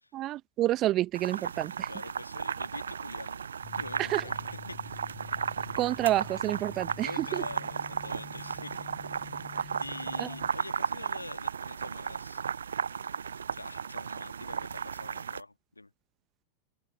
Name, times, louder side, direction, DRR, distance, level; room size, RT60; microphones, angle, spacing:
voice 1, 0.1-1.9 4.0-4.3 5.8-7.4 10.2-10.3, right 15 dB, 35° right, 1.2 m, -29 dB
sound 1, 1.1-15.4, right 7 dB, 70° right, 0.4 m, -35 dB
voice 2, 1.9-3.4 3.8-5.0 7.0-8.8 9.8-12.4 13.5-15.9, left 2 dB, 85° left, 1.7 m, -45 dB
sound 2, 3.6-10.5, left 13 dB, 35° left, 4.0 m, -48 dB
open air
figure-of-eight pair, 90°, 0 cm